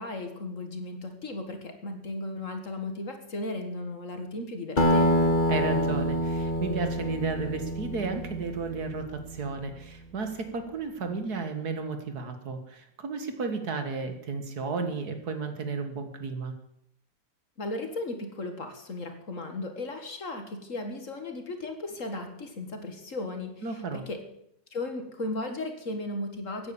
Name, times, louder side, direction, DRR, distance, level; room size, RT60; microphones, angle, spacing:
voice 1, 0.0-5.3 17.6-24.2 24.7-26.7, left 2 dB, 50° left, 6 dB, 2.2 m, -36 dB
Acoustic guitar, 4.8-9.6, equal, 30° left, 1.7 m, -27 dB
voice 2, 5.5-16.5 23.6-24.0, right 4 dB, 65° right, 7 dB, 2.1 m, -33 dB
15.5 x 9.7 x 7.2 m, 0.75 s
omnidirectional pair, 1.8 m